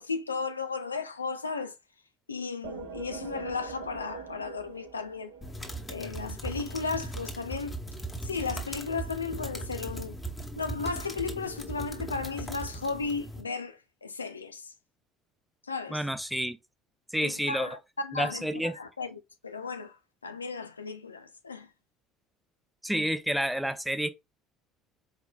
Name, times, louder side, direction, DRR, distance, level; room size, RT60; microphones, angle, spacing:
voice 1, 0.0-1.7 2.3-5.3 5.9-7.8 8.2-10.2 10.6-14.7 15.7-16.0 17.2-20.0 20.2-21.7, left 4 dB, 80° left, 0.4 m, -35 dB
sound 1, 2.6-6.2, right 6 dB, 60° right, 0.8 m, -43 dB
sound 2, 5.4-13.4, right 1 dB, 15° left, 1.1 m, -38 dB
voice 2, 15.9-16.6 17.1-17.7 18.1-18.7 22.8-24.1, equal, ahead, 0.6 m, -29 dB
4.5 x 3.8 x 2.2 m
figure-of-eight pair, 60°, 0 cm